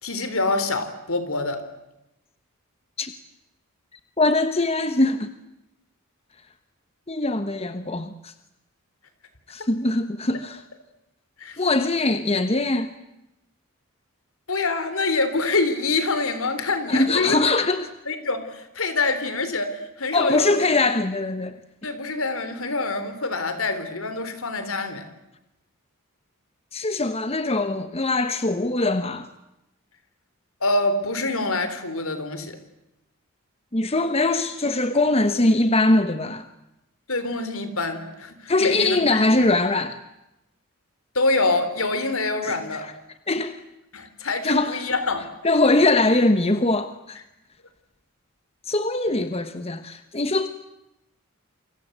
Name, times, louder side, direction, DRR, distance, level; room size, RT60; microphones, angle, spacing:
voice 1, 0.0-1.6 11.4-11.6 14.5-17.4 18.1-20.6 21.8-25.1 30.6-32.6 37.1-39.4 41.1-42.8 43.9-45.3, left 3 dB, 70° left, 10 dB, 4.0 m, -25 dB
voice 2, 4.2-5.3 7.1-8.3 9.5-10.6 11.6-12.9 16.9-17.9 20.1-21.6 26.7-29.3 33.7-36.4 38.5-40.0 42.4-42.9 43.3-43.6 44.4-44.9 45.4-47.2 48.7-50.5, left 2 dB, 30° left, 10 dB, 1.1 m, -22 dB
28.5 x 25.5 x 8.1 m, 0.91 s
head